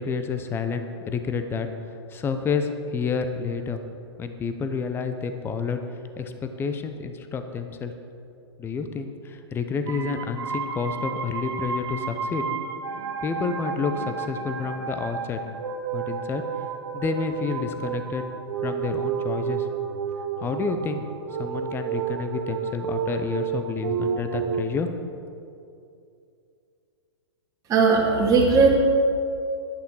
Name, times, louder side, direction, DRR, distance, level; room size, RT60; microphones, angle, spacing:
voice 1, 0.0-1.7 2.1-3.8 4.2-5.8 6.2-7.9 8.6-12.4 13.2-15.4 15.9-16.4 16.9-18.3 18.6-19.7 20.4-21.1 21.4-24.9, left 5 dB, 15° left, 8 dB, 0.7 m, -29 dB
sound 1, 9.9-24.6, right 6 dB, 65° right, 0.9 m, -31 dB
voice 2, 27.7-28.7, right 4 dB, 25° right, -2 dB, 2.4 m, -18 dB
11.5 x 6.6 x 6.3 m, 2.5 s
hypercardioid pair, 120°, 15 cm